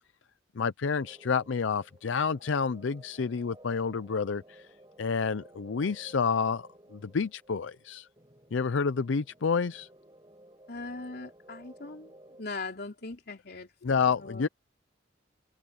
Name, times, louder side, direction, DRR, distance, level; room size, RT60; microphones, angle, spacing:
voice 1, 0.6-4.7 5.0-8.1 8.5-9.9 13.8-14.5, left 5 dB, 75° left, 0.5 m, -29 dB
sound 1, 1.0-12.4, right 1 dB, 20° right, 7.8 m, -56 dB
voice 2, 10.7-12.1 12.4-13.7 14.2-14.5, left 3 dB, 55° left, 3.5 m, -40 dB
open air
head